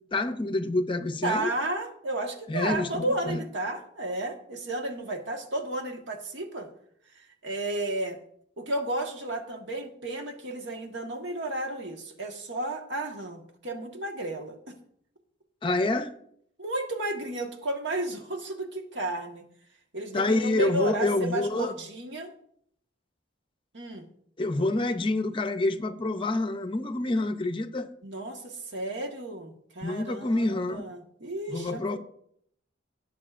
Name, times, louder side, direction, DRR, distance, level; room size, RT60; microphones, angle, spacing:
voice 1, 0.1-1.5 2.5-3.4 15.6-16.1 20.1-21.7 24.4-27.9 29.8-30.8 31.5-32.0, left 2 dB, 25° left, 9 dB, 0.6 m, -27 dB
voice 2, 1.2-6.7 7.4-8.2 8.6-14.8 16.6-19.4 19.9-22.3 23.7-24.0 28.0-32.0, right 2 dB, 70° right, 3 dB, 1.4 m, -33 dB
18.0 x 7.5 x 2.5 m, 0.68 s
head